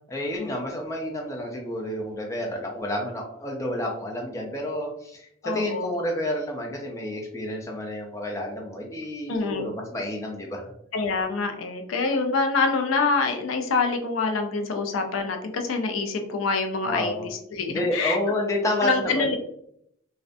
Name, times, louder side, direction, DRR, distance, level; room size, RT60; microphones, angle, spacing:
voice 1, 0.1-10.7 16.8-17.3 17.7-19.4, left 1 dB, 15° left, 0 dB, 0.4 m, -30 dB
voice 2, 5.4-5.9 9.3-9.7 10.9-17.1 17.5-18.2 18.8-19.4, left 4 dB, 90° left, 5 dB, 0.4 m, -26 dB
2.4 x 2.1 x 2.5 m, 0.72 s
head